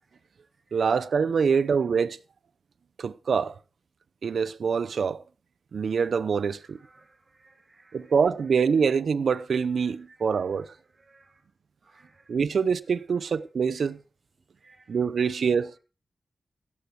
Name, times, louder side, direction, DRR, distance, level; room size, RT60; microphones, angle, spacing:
voice 1, 0.7-2.2 3.0-3.5 4.2-5.2 5.7-6.8 7.9-10.7 12.3-14.0 14.9-15.8, right 6 dB, 85° right, 0.8 m, -25 dB
voice 2, 6.8-8.1 10.1-10.2 11.0-11.4 11.8-12.3 14.6-14.9, right 3 dB, 55° right, 2.9 m, -59 dB
16.5 x 9.4 x 4.7 m
cardioid pair, 55°, 0 cm